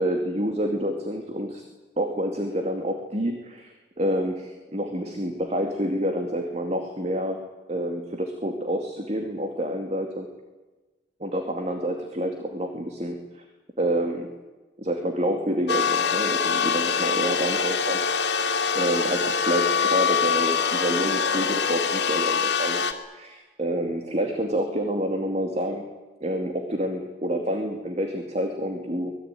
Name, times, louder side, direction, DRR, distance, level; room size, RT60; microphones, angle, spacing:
voice 1, 0.0-1.6 2.0-7.4 7.7-10.3 11.2-13.4 13.8-14.3 14.8-18.0 18.7-25.9 26.2-29.1, right 1 dB, 35° right, 5 dB, 2.5 m, -28 dB
sound 1, 15.7-22.9, left 6 dB, 70° left, 2.8 m, -24 dB
25.0 x 21.0 x 9.3 m, 1.2 s
head